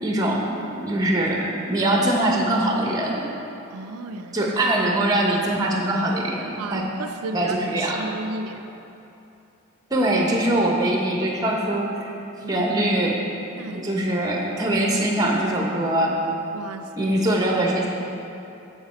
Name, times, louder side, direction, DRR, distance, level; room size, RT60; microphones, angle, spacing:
voice 1, 0.0-3.3 4.3-6.8 7.3-8.0 9.9-12.1 12.5-13.2 13.7-16.1 17.0-17.9, right 1 dB, 15° right, -1 dB, 0.7 m, -22 dB
voice 2, 3.7-4.5 6.6-8.7 12.4-12.7 13.6-13.9 16.5-17.2, right 3 dB, 85° right, 7 dB, 0.4 m, -34 dB
6.7 x 6.5 x 4.2 m, 3.0 s
head